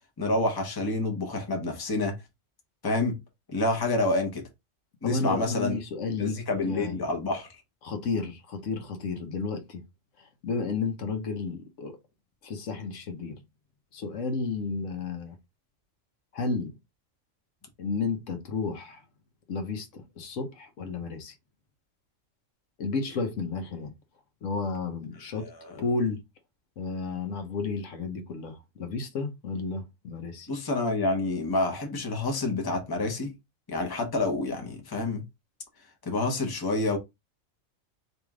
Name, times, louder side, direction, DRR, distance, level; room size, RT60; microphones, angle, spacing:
voice 1, 0.2-2.2 2.8-3.2 3.5-4.4 5.0-5.7 6.2-7.5 25.3-25.8 30.5-33.3 33.7-35.2 36.0-37.0, left 2 dB, 20° left, 0.8 m, -28 dB
voice 2, 5.0-7.0 7.8-9.8 10.2-12.0 12.4-13.4 13.9-15.4 16.3-16.8 17.8-19.0 19.5-21.3 22.8-23.9 24.4-25.5 25.8-26.2 26.8-30.5, left 4 dB, 75° left, 1.1 m, -32 dB
3.2 x 3.0 x 3.6 m
omnidirectional pair, 1.3 m